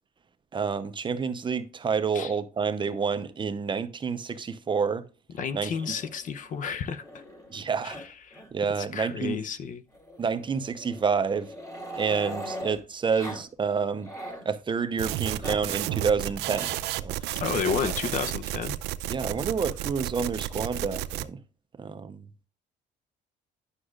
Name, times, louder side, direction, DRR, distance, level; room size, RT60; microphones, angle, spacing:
voice 1, 0.5-5.0 5.5-5.7 7.5-8.0 8.5-9.4 10.2-11.5 12.0-14.1 14.4-17.4 19.1-21.4 21.8-22.2, right 5 dB, 30° right, 0.7 m, -29 dB
voice 2, 5.4-7.0 7.8-8.0 8.3-8.4 8.8-9.8 17.4-18.8, left 6 dB, 50° left, 0.7 m, -31 dB
Growling, 5.7-7.6 7.9-8.1 8.3-8.5 8.8-8.9 9.9-12.8 13.2-13.4 13.8-14.5 15.2-15.6 16.5-16.9 17.7-18.0 19.1-19.8, equal, 20° left, 2.8 m, -41 dB
sound 1, 15.0-21.2, right 14 dB, 85° right, 0.5 m, -32 dB
9.8 x 6.2 x 2.4 m
cardioid pair, 110°, 17 cm